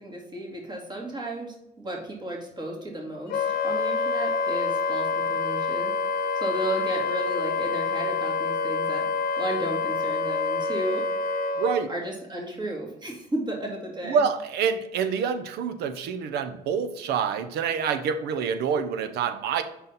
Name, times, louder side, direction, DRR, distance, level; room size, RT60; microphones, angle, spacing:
voice 1, 0.0-9.1 9.4-11.0 11.9-14.2, right 1 dB, 25° right, 0 dB, 2.1 m, -34 dB
Wind instrument woodwind instrument, 3.3-11.8, left 4 dB, 60° left, 0.9 m, -27 dB
voice 2, 11.6-11.9 14.0-19.6, right 6 dB, 75° right, 9 dB, 0.6 m, -27 dB
5.6 x 4.0 x 5.6 m, 0.85 s
cardioid pair, 110°, 17 cm